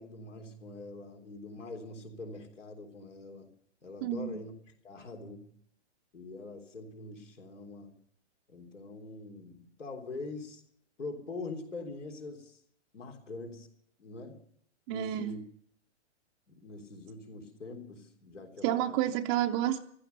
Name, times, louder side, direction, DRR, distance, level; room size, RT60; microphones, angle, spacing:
voice 1, 0.0-3.5 3.8-4.5 4.8-5.6 6.1-7.9 8.5-10.6 11.0-12.6 12.9-13.7 14.0-14.4 14.9-15.4 16.5-19.0, left 3 dB, 85° left, 2 dB, 3.6 m, -44 dB
voice 2, 4.0-4.4 14.9-15.4 18.6-19.8, right 11 dB, 20° right, 1 dB, 0.5 m, -30 dB
15.5 x 13.5 x 6.9 m, 0.66 s
hypercardioid pair, 135°, 35 cm